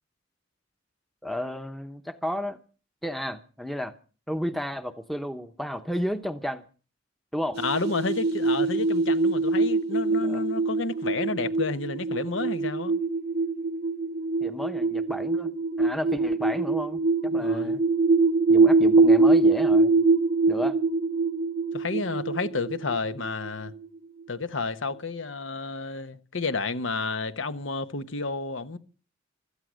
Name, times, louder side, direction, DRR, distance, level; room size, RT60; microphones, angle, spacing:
voice 1, 1.2-2.6 3.0-3.9 4.3-6.6 7.3-7.6 10.2-10.4 14.4-15.5 15.8-17.8 18.5-20.0 20.5-20.8, equal, ahead, 0.8 m, -32 dB
sound 1, 7.5-23.8, right 3 dB, 55° right, 0.7 m, -23 dB
voice 2, 7.6-12.9 17.3-17.8 21.7-23.7 24.3-28.8, left 3 dB, 80° left, 1.1 m, -31 dB
17.0 x 13.5 x 6.3 m
head